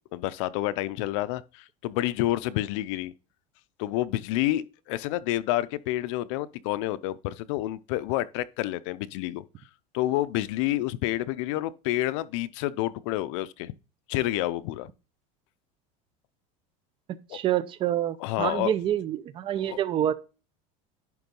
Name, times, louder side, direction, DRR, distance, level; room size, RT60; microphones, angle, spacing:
voice 1, 0.1-3.1 3.8-9.4 9.9-13.7 14.1-14.9 17.3-17.4 18.2-18.7 19.6-19.8, left 15 dB, 70° left, 0.6 m, -29 dB
voice 2, 17.1-20.1, right 11 dB, 30° right, 0.7 m, -27 dB
10.5 x 3.8 x 5.4 m
cardioid pair, 160°, 16 cm